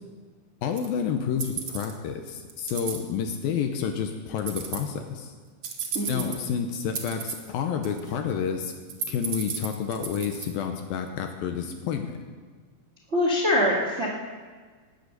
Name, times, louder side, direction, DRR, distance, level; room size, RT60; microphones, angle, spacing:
voice 1, 0.6-5.3 6.1-8.7 9.1-12.2, left 7 dB, 75° left, 5 dB, 2.3 m, -29 dB
sound 1, 0.8-0.9 1.4-1.9 2.5-3.0 4.4-4.9 5.6-6.5 6.9-7.5 7.8-8.3 8.7-10.5, right 6 dB, 70° right, 1.3 m, -33 dB
voice 2, 5.9-6.3 13.1-14.1, left 1 dB, 40° right, -4 dB, 0.9 m, -24 dB
18.5 x 8.0 x 6.7 m, 1.5 s
omnidirectional pair, 4.7 m